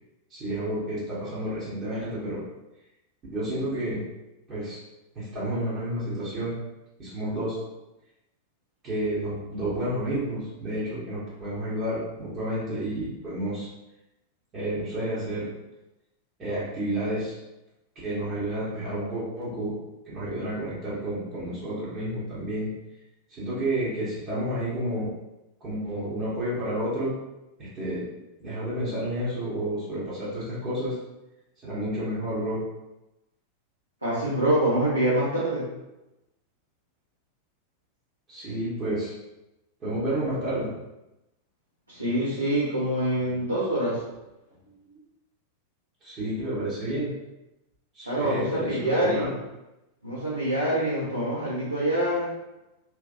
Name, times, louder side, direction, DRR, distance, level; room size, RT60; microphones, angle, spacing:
voice 1, 0.3-2.4 3.3-4.0 4.5-4.8 5.1-6.5 7.0-7.6 8.8-13.7 14.5-15.5 16.4-17.4 17.9-19.7 20.1-22.7 23.3-25.1 25.6-27.1 27.6-28.0 28.4-31.0 31.6-32.6 38.3-39.1 39.8-40.7 46.0-47.1 47.9-49.4, right 1 dB, 30° right, -9 dB, 1.4 m, -30 dB
voice 2, 34.0-35.7 41.9-44.0 48.0-49.3 50.0-52.3, right 1 dB, 85° right, -10 dB, 1.1 m, -25 dB
3.1 x 3.1 x 2.5 m, 0.98 s
figure-of-eight pair, 90°, 0 cm